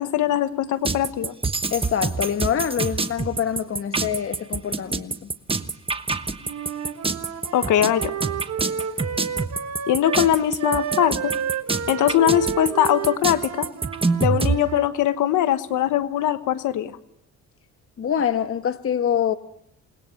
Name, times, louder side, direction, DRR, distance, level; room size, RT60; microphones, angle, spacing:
voice 1, 0.0-1.3 7.5-8.1 9.9-11.3 11.9-13.7 14.2-16.9, left 11 dB, 80° left, 1.2 m, -21 dB
sound 1, 0.8-14.6, right 4 dB, 20° right, 1.2 m, -26 dB
voice 2, 1.7-5.3 18.0-19.4, left 8 dB, 45° left, 1.3 m, -25 dB
Wind instrument woodwind instrument, 6.4-10.3 10.6-14.9, right 8 dB, 60° right, 1.7 m, -31 dB
28.5 x 20.0 x 6.5 m
cardioid pair, 90°, 30 cm